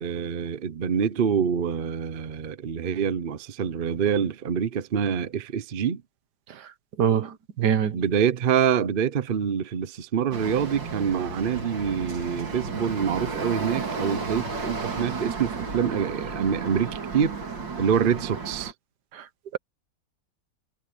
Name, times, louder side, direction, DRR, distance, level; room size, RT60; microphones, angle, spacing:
voice 1, 0.0-6.0 7.9-17.4 17.8-18.7, right 7 dB, 50° right, 0.6 m, -26 dB
voice 2, 7.0-8.0 19.5-19.6, right 8 dB, 65° right, 1.6 m, -23 dB
sound 1, 10.3-18.7, right 4 dB, 85° right, 3.3 m, -33 dB
omnidirectional pair, 1.9 m